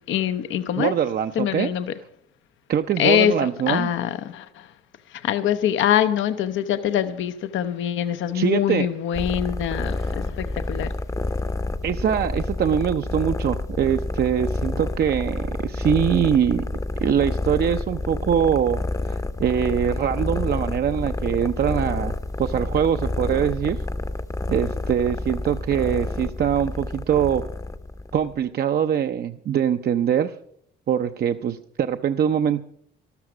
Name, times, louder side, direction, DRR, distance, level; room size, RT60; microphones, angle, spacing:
voice 1, 0.1-0.9 1.4-1.9 3.0-4.7 5.1-10.9, left 10 dB, 75° left, 10 dB, 0.7 m, -24 dB
voice 2, 0.8-1.7 2.7-3.9 8.3-8.9 9.9-10.1 11.8-16.6 17.0-18.8 19.1-22.1 22.4-23.8 24.5-27.4 28.1-30.3 30.9-32.6, right 8 dB, 50° right, 8 dB, 0.6 m, -23 dB
sound 1, 9.1-28.4, left 2 dB, 15° left, 0.7 m, -29 dB
13.0 x 13.0 x 6.0 m, 0.67 s
cardioid pair, 90°, 20 cm